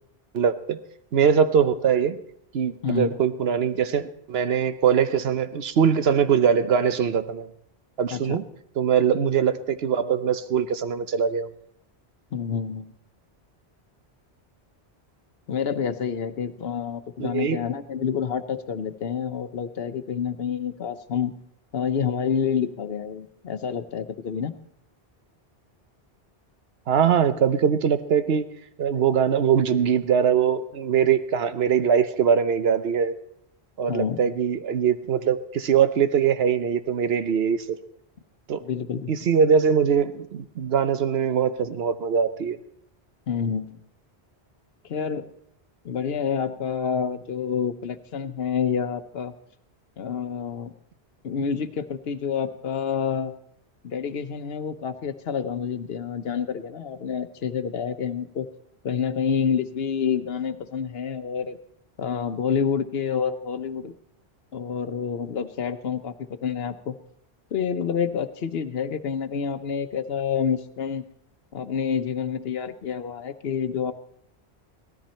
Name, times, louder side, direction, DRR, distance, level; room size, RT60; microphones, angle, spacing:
voice 1, 0.3-0.8 1.1-2.2 2.5-7.5 8.0-8.4 8.8-11.5 17.2-17.6 26.9-28.4 28.8-33.1 33.8-37.7 38.5-38.6 39.1-42.6, right 7 dB, 70° right, 11 dB, 1.0 m, -22 dB
voice 2, 2.8-3.1 8.1-8.4 12.3-12.9 15.5-21.3 21.7-24.5 33.9-34.2 38.6-39.2 43.3-43.8 44.9-45.3 45.8-49.3 50.0-50.7 51.2-53.3 53.8-58.5 58.8-61.6 62.0-63.9 64.5-67.0 67.5-71.0 71.5-73.9, left 7 dB, 70° left, 10 dB, 1.0 m, -28 dB
17.5 x 13.5 x 4.3 m, 0.74 s
omnidirectional pair, 1.1 m